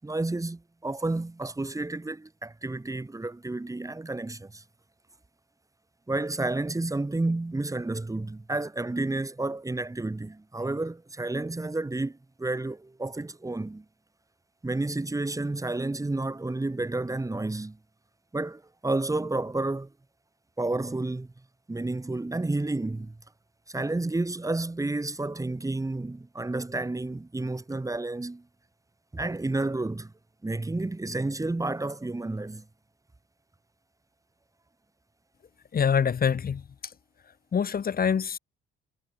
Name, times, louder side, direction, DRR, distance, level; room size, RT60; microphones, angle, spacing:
voice 1, 0.0-4.6 6.1-13.8 14.6-17.8 18.3-19.9 20.6-21.3 21.7-23.1 23.7-28.4 29.1-30.1 30.4-32.6, right 2 dB, 15° right, 5.8 m, -31 dB
voice 2, 35.7-36.6 37.5-38.4, left 7 dB, 50° left, 5.5 m, -25 dB
cardioid pair, 90°, 20 cm